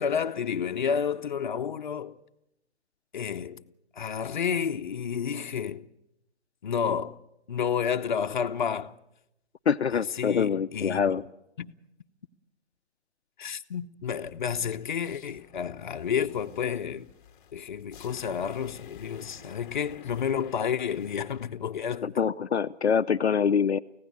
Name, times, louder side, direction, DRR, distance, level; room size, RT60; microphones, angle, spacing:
voice 1, 0.0-2.1 3.1-3.6 4.0-5.9 6.6-7.2 7.5-8.9 9.9-11.1 11.6-11.7 13.4-17.1 17.5-22.1, left 7 dB, 45° left, 0.9 m, -30 dB
voice 2, 9.7-11.2 22.0-23.8, left 7 dB, 70° left, 0.7 m, -25 dB
sound 1, 14.1-21.5, left 6 dB, 15° left, 1.5 m, -51 dB
25.0 x 16.5 x 8.2 m
figure-of-eight pair, 150°, 34 cm